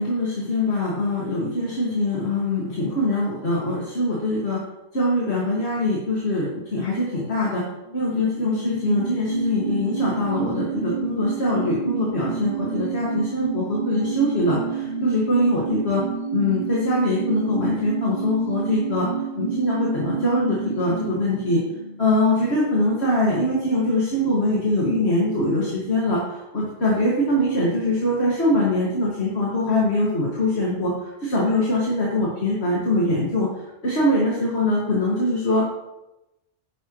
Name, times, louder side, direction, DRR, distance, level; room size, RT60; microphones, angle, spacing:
voice 1, 0.0-4.6 4.9-7.6 7.9-16.0 16.3-19.1 19.4-21.6 22.0-30.9 31.2-33.5 33.8-35.6, left 1 dB, 75° left, -5 dB, 2.5 m, -23 dB
sound 1, 7.8-22.9 23.2-23.3, right 6 dB, 35° left, 3.0 m, -30 dB
12.0 x 10.5 x 3.2 m, 0.96 s
omnidirectional pair, 1.1 m